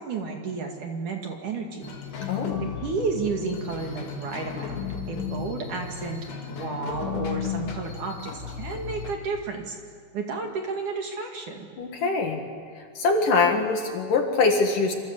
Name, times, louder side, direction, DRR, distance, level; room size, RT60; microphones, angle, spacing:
voice 1, 0.0-4.8 5.1-9.8 10.1-11.7, right 4 dB, 55° right, 3 dB, 3.1 m, -32 dB
sound 1, 1.8-9.1, left 7 dB, 75° left, 4.9 m, -34 dB
voice 2, 2.3-2.6 11.8-12.4 13.0-14.9, left 4 dB, 55° left, 3 dB, 3.1 m, -23 dB
26.5 x 26.0 x 8.1 m, 2.2 s
omnidirectional pair, 5.0 m